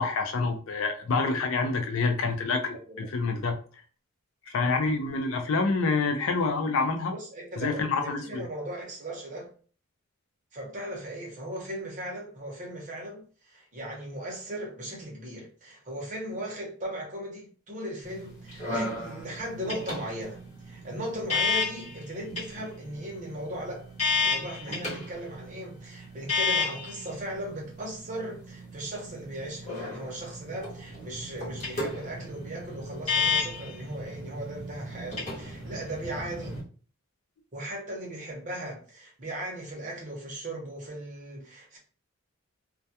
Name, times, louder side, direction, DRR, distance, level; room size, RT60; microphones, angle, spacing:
voice 1, 0.0-3.6 4.5-7.1 7.6-8.4, left 4 dB, 65° left, 0.4 m, -27 dB
voice 2, 7.1-9.5 10.5-23.9 24.2-36.6 37.5-41.8, right 1 dB, 35° right, 0.8 m, -38 dB
sound 1, 18.0-36.6, left 4 dB, 30° left, 0.9 m, -33 dB
2.2 x 2.2 x 2.7 m
head